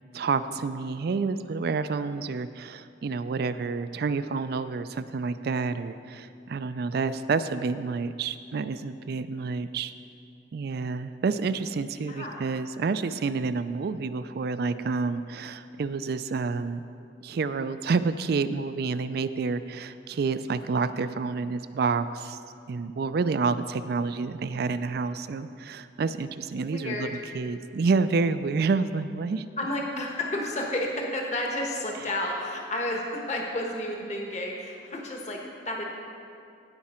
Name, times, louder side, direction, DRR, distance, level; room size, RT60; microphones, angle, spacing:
voice 1, 0.1-9.9 10.5-16.8 17.2-22.4 22.7-29.4, right 4 dB, 60° right, 12 dB, 0.4 m, -29 dB
voice 2, 12.1-12.4 26.5-27.1 29.6-35.8, left 1 dB, 40° left, 0 dB, 1.3 m, -31 dB
17.0 x 5.9 x 4.4 m, 2.4 s
head